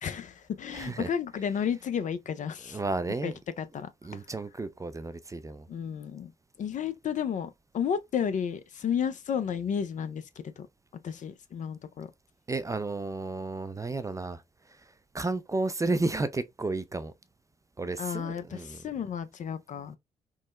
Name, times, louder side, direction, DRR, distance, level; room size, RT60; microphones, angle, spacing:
voice 1, 0.0-2.8 3.2-3.9 5.7-6.3 6.6-10.5 11.0-12.1 18.0-20.0, left 7 dB, 45° left, 0.4 m, -32 dB
voice 2, 0.7-1.1 2.7-3.4 4.0-5.6 12.5-14.4 15.1-17.1 17.8-18.8, right 3 dB, 20° right, 0.4 m, -32 dB
3.7 x 2.0 x 2.3 m
hypercardioid pair, 45°, 18 cm